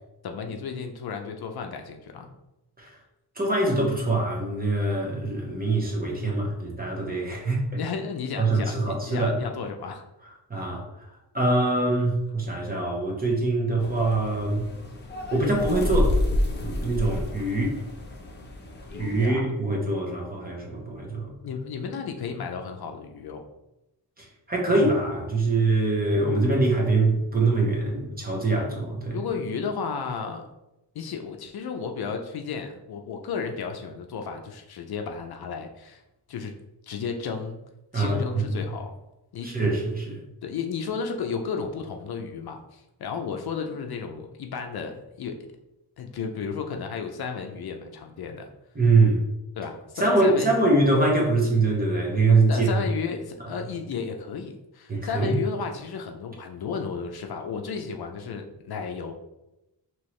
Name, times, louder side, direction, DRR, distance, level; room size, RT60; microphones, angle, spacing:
voice 1, 0.2-2.3 7.8-10.0 18.9-19.5 21.4-23.4 29.1-30.5 30.9-36.0 36.3-36.5 36.8-37.6 37.9-38.9 39.3-39.5 40.4-45.4 46.0-48.5 49.6-50.5 52.5-59.1, left 5 dB, 60° left, 4 dB, 0.5 m, -33 dB
voice 2, 3.4-7.8 8.4-9.3 10.5-10.8 11.3-14.7 15.3-16.2 16.6-17.8 19.0-21.3 24.5-29.2 37.9-38.6 39.4-40.2 48.7-49.2 50.0-52.7 54.9-55.4, right 2 dB, 20° right, -2 dB, 1.0 m, -23 dB
sound 1, 13.8-19.3, left 1 dB, 25° left, 0.7 m, -29 dB
4.5 x 3.0 x 3.1 m, 0.93 s
wide cardioid pair, 115°, 43 cm